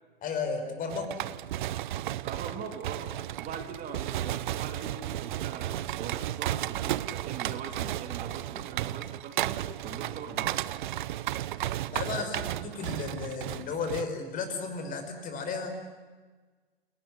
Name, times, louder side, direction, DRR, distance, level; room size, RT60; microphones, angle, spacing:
voice 1, 0.2-1.1 3.5-3.6 11.9-15.9, left 4 dB, 30° left, 6 dB, 5.6 m, -34 dB
sound 1, 0.9-14.1, right 13 dB, 55° right, 0.9 m, -34 dB
voice 2, 2.2-3.1 3.4-10.6 12.1-12.3, right 6 dB, 30° right, 5 dB, 3.2 m, -41 dB
29.0 x 19.5 x 9.8 m, 1.4 s
figure-of-eight pair, 110°, 30 cm